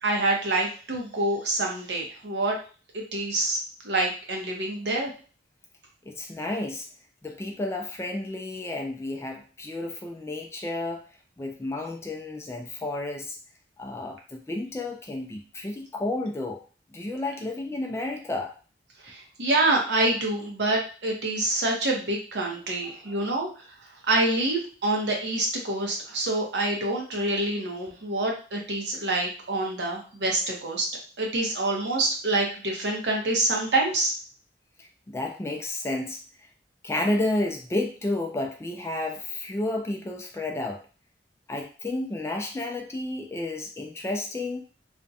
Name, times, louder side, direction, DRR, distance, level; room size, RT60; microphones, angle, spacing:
voice 1, 0.0-2.6 2.9-3.6 3.8-5.1 19.0-23.5 24.1-30.9 31.2-34.1, right 2 dB, 70° right, 0 dB, 0.7 m, -26 dB
voice 2, 6.1-6.9 7.2-11.0 11.4-13.4 13.8-16.6 16.9-18.5 22.8-23.2 34.8-36.2 36.8-40.8 41.5-44.6, left 2 dB, 15° left, 2 dB, 0.3 m, -31 dB
2.5 x 2.1 x 2.6 m, 0.37 s
head